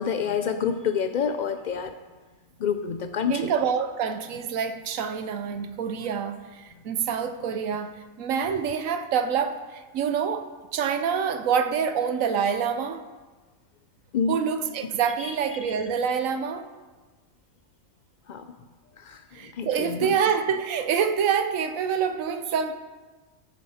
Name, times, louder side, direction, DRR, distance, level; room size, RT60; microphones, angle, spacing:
voice 1, 0.0-1.9 2.6-3.5 14.1-14.4 15.2-15.7 18.3-18.4 19.0-19.2 19.6-20.1, left 7 dB, 75° left, 0.4 m, -28 dB
voice 2, 3.3-13.0 14.3-16.7 19.3-22.7, right 7 dB, 80° right, 1.1 m, -26 dB
14.5 x 7.6 x 4.2 m
omnidirectional pair, 1.4 m